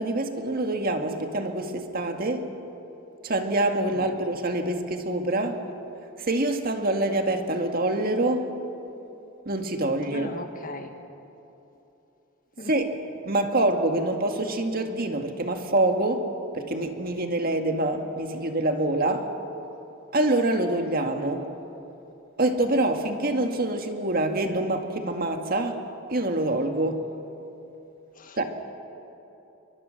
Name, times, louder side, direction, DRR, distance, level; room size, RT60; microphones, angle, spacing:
voice 1, 0.0-2.5 3.2-5.6 6.2-8.5 9.5-10.4 12.7-12.9 13.2-19.3 20.1-21.5 22.4-27.1 28.4-28.5, right 2 dB, 45° right, 5 dB, 1.9 m, -26 dB
voice 2, 10.1-10.9 12.6-12.7 13.4-13.5 28.2-28.4, left 2 dB, 40° left, 6 dB, 1.7 m, -39 dB
28.5 x 24.0 x 6.6 m, 2.9 s
head